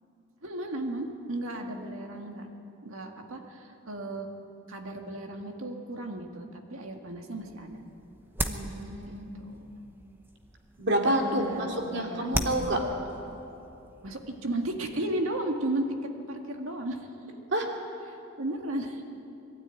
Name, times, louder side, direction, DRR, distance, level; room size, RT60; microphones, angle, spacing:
voice 1, 0.4-2.5 2.8-4.3 4.7-7.8 9.0-9.5 11.4-12.5 14.0-15.9 16.3-17.1 18.1-19.0, right 1 dB, 70° right, 3 dB, 2.0 m, -34 dB
sound 1, 7.4-15.1, right 1 dB, 10° right, 0.8 m, -39 dB
voice 2, 8.4-9.3 10.8-11.4 11.9-12.8 17.5-17.7, right 1 dB, 55° right, 1 dB, 2.6 m, -28 dB
22.5 x 12.5 x 9.3 m, 2.9 s
head